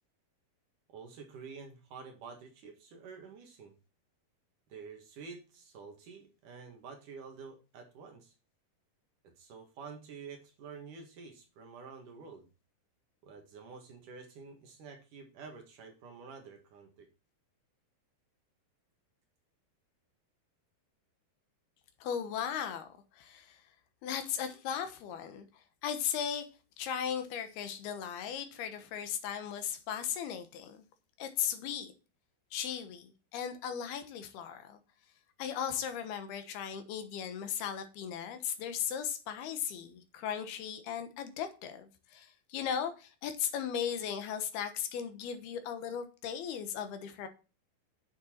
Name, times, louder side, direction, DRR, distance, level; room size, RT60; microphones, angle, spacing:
voice 1, 0.9-3.7 4.7-8.3 9.2-12.5 13.2-17.1, right 5 dB, 60° right, 2.9 m, -49 dB
voice 2, 22.0-22.9 23.1-23.6 24.0-25.5 25.8-26.5 26.8-30.8 31.2-31.9 32.5-34.8 35.4-47.3, left 8 dB, 75° left, 3.1 m, -37 dB
8.9 x 7.0 x 4.4 m
omnidirectional pair, 4.7 m